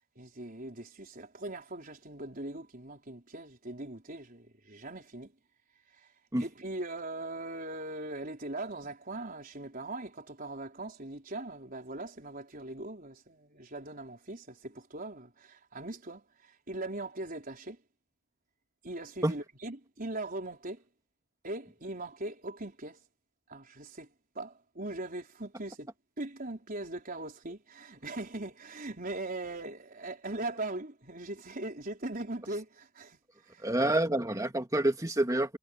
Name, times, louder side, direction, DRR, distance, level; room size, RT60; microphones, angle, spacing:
voice 1, 0.2-5.3 6.4-17.8 18.8-20.8 21.4-23.0 23.5-24.1 24.3-25.9 26.2-33.2 33.4-33.7, right 2 dB, 40° right, 4.6 m, -40 dB
voice 2, 33.6-35.6, right 1 dB, 15° right, 2.1 m, -28 dB
head